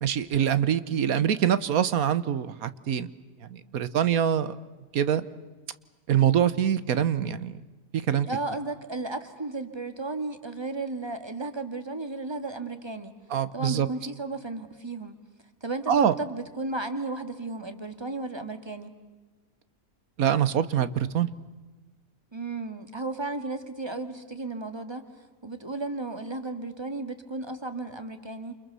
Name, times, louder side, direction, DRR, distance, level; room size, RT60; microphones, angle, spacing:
voice 1, 0.0-3.1 3.5-4.6 4.9-5.2 6.1-7.6 7.9-8.3 13.3-13.9 15.9-16.1 20.2-21.3, right 9 dB, 80° right, 14 dB, 1.5 m, -24 dB
voice 2, 8.3-13.2 13.5-15.2 15.6-18.9 22.3-25.1 25.4-28.6, right 3 dB, 20° right, 8 dB, 1.9 m, -34 dB
28.5 x 28.5 x 6.9 m, 1.2 s
omnidirectional pair, 1.5 m